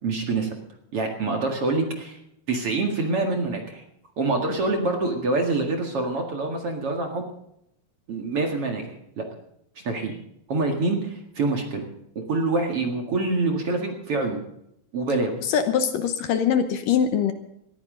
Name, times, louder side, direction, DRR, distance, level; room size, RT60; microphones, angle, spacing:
voice 1, 0.0-0.5 0.9-2.2 2.5-3.8 4.2-7.3 8.1-9.3 9.8-10.1 10.5-14.4 14.9-15.3, right 3 dB, 45° right, 2 dB, 2.4 m, -26 dB
voice 2, 15.5-17.3, left 8 dB, 70° left, 8 dB, 2.4 m, -22 dB
20.0 x 14.5 x 3.9 m, 0.77 s
omnidirectional pair, 4.4 m